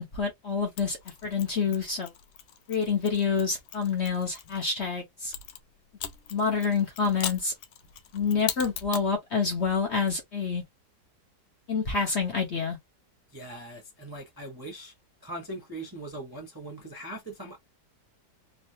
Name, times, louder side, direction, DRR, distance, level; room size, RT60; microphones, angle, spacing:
voice 1, 0.0-2.1 2.7-5.3 6.3-7.5 8.1-10.6 11.7-12.8, left 5 dB, 50° left, 1.0 m, -27 dB
Mechanisms, 0.8-4.6 5.3-9.1, left 10 dB, 80° left, 1.3 m, -40 dB
voice 2, 13.3-14.9 15.2-17.6, right 1 dB, 20° right, 0.6 m, -40 dB
3.2 x 2.4 x 2.7 m
omnidirectional pair, 1.9 m